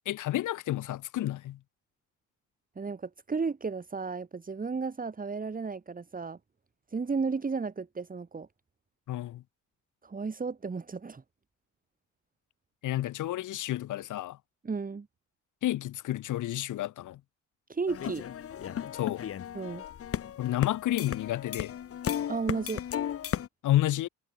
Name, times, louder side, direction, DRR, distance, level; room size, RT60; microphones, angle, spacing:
voice 1, 0.0-1.6 9.1-9.4 12.8-14.4 15.6-17.2 18.9-19.2 20.4-21.7 23.6-24.1, left 14 dB, 80° left, 2.8 m, -30 dB
voice 2, 2.8-6.4 6.9-8.5 10.0-11.2 14.6-15.1 17.7-18.2 19.5-19.8 22.3-22.8, right 4 dB, 30° right, 2.8 m, -33 dB
sound 1, 17.9-23.5, left 9 dB, 50° left, 1.0 m, -35 dB
cardioid pair, 90°, 30 cm